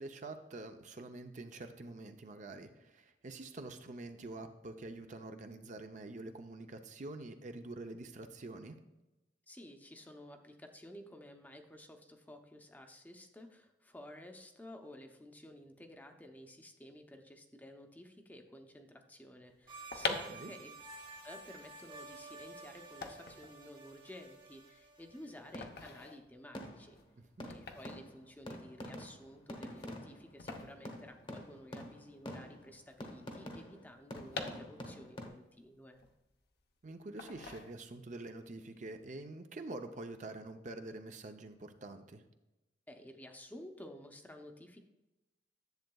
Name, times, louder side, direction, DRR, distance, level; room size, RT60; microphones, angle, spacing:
voice 1, 0.0-8.8 20.1-20.5 27.2-27.5 36.8-42.2, right 2 dB, 45° right, 6 dB, 0.6 m, -46 dB
voice 2, 9.5-20.7 21.2-27.0 27.5-36.0 42.9-44.8, left 1 dB, 10° left, 4 dB, 0.7 m, -53 dB
sound 1, 19.7-31.8 32.1-32.2 32.3-35.2 35.6-36.6 37.2-38.2 38.5-38.8, left 4 dB, 60° left, 0.8 m, -45 dB
sound 2, 19.7-25.5, right 3 dB, 30° right, 1.1 m, -52 dB
sound 3, 25.5-26.0 26.5-27.1 27.4-35.3, equal, 30° left, 0.9 m, -47 dB
10.5 x 7.5 x 2.3 m, 1.0 s
head